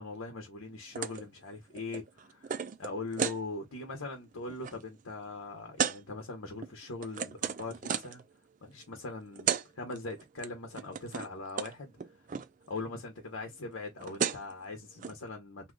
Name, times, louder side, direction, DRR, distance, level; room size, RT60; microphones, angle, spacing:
voice 1, 0.0-2.5 2.8-8.2 8.6-11.9 12.7-15.7, left 3 dB, 85° left, 0.9 m, -41 dB
sound 1, 1.0-1.2 1.5-3.4 3.9-4.1 4.4-4.7 5.8-6.0 6.6-8.2 9.1-9.2 9.4-9.7 9.9-10.5 10.7-11.3 11.6-11.7 12.0-12.5 13.7-13.8 14.0-14.5 15.0-15.1, right 7 dB, 40° right, 0.4 m, -34 dB
2.8 x 2.3 x 3.7 m
head